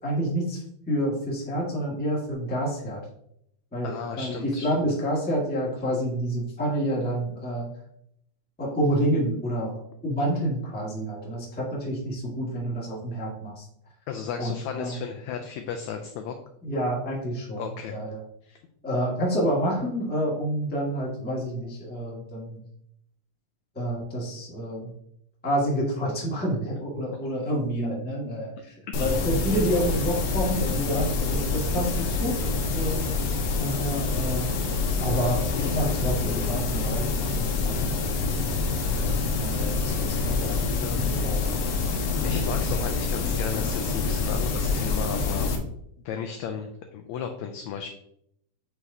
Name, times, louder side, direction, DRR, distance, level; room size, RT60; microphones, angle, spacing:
voice 1, 0.0-3.0 3.7-7.7 8.6-13.7 14.4-14.9 16.6-18.2 18.8-22.6 23.7-24.9 25.4-33.0 33.5-34.6 35.0-38.0 39.4-41.6, equal, 5° left, -5 dB, 0.7 m, -28 dB
voice 2, 3.8-4.7 14.1-16.4 17.6-17.9 18.4-18.6 28.9-29.1 39.6-39.7 40.8-41.4 42.2-45.5 46.0-47.9, left 7 dB, 85° left, 5 dB, 1.6 m, -34 dB
sound 1, 28.9-45.6, left 4 dB, 70° left, 1.7 m, -26 dB
8.1 x 4.6 x 2.8 m, 0.73 s
omnidirectional pair, 3.8 m